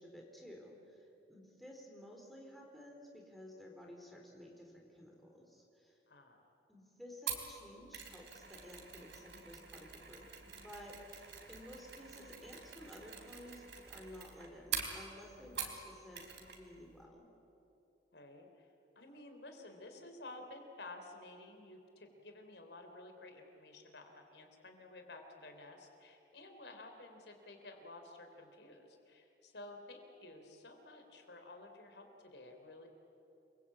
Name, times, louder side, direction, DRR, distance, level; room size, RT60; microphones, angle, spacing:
voice 1, 0.0-6.0 6.7-17.3, left 1 dB, ahead, -1 dB, 4.2 m, -54 dB
voice 2, 6.1-6.4 18.1-18.7 19.0-32.9, left 2 dB, 70° left, 4 dB, 3.5 m, -53 dB
Mechanisms, 7.3-15.9 16.1-16.6 16.9-17.0, right 7 dB, 80° right, 3.9 m, -45 dB
29.0 x 23.0 x 8.6 m, 2.9 s
head